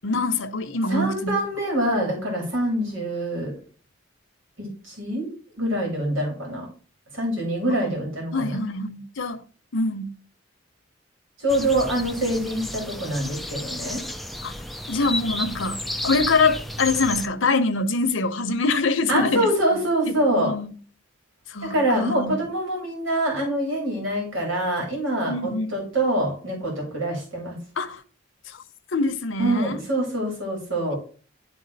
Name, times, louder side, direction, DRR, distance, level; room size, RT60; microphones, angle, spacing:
voice 1, 0.0-1.4 7.9-8.0 8.3-9.4 9.7-10.2 14.4-14.5 14.9-19.5 20.1-20.7 21.5-22.4 25.3-25.8 27.8-28.0 28.9-29.8, left 3 dB, 75° left, 0.8 m, -24 dB
voice 2, 0.9-3.5 4.6-5.3 5.5-6.7 7.1-8.6 11.4-14.0 19.1-20.5 21.6-27.6 29.4-31.0, right 1 dB, 80° right, 3.2 m, -25 dB
sound 1, 11.5-17.3, left 1 dB, ahead, 0.3 m, -32 dB
11.0 x 3.6 x 4.1 m
head